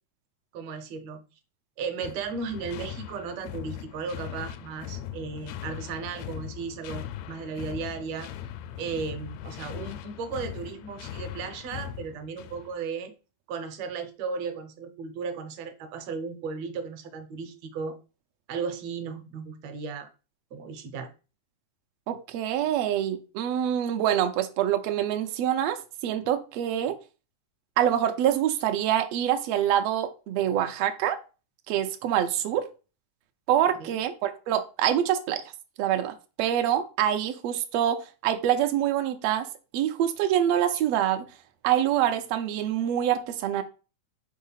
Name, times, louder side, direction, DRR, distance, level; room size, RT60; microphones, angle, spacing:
voice 1, 0.5-1.2 1.8-8.3 8.8-13.1 13.5-18.0 18.5-20.1 20.5-21.1 33.7-34.0, right 5 dB, 70° right, 1.7 m, -35 dB
sound 1, 2.0-12.8, left 10 dB, 85° left, 1.5 m, -40 dB
voice 2, 22.1-27.0 27.8-31.2 31.7-32.7 33.5-35.4 35.8-39.5 39.7-41.2 41.6-43.6, right 10 dB, 85° right, 1.4 m, -25 dB
4.8 x 3.6 x 5.5 m
omnidirectional pair, 3.7 m